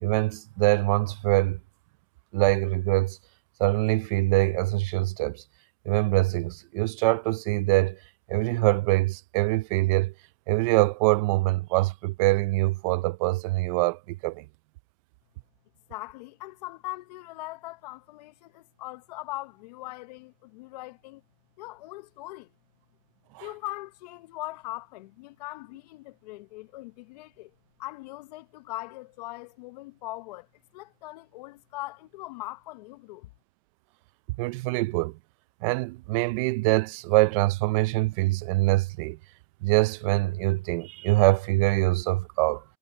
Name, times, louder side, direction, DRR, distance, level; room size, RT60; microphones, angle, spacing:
voice 1, 0.0-1.6 2.3-3.2 3.6-5.4 5.9-8.0 8.3-10.1 10.5-14.4 23.3-23.4 34.4-35.1 35.6-39.2 39.6-42.6, right 21 dB, 55° right, 0.5 m, -24 dB
voice 2, 15.9-21.2 21.6-22.5 23.4-27.5 27.8-30.5 30.7-33.3, left 19 dB, 80° left, 0.8 m, -40 dB
supercardioid pair, 170°, 21 cm